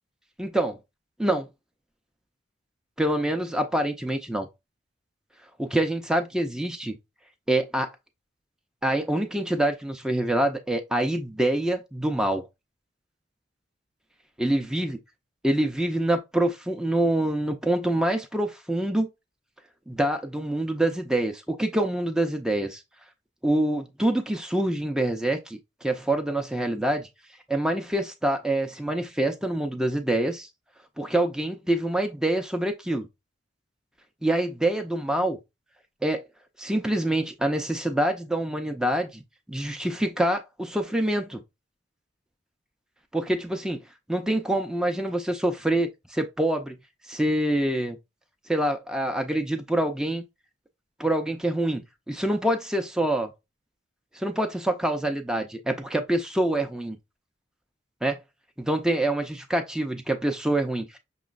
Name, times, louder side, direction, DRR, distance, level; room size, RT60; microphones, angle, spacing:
voice 1, 0.4-0.8 1.2-1.5 3.0-4.5 5.6-7.0 7.5-7.9 8.8-12.4 14.4-15.0 15.4-19.1 19.9-22.8 23.4-27.1 27.5-30.5 31.0-33.1 34.2-35.4 36.0-36.2 36.6-39.2 39.5-41.4 43.1-43.8 44.1-46.8 47.1-48.0 48.5-50.2 51.0-53.3 54.1-57.0 58.0-58.2 58.6-61.0, right 1 dB, 5° right, 0.4 m, -26 dB
5.9 x 3.0 x 2.4 m
head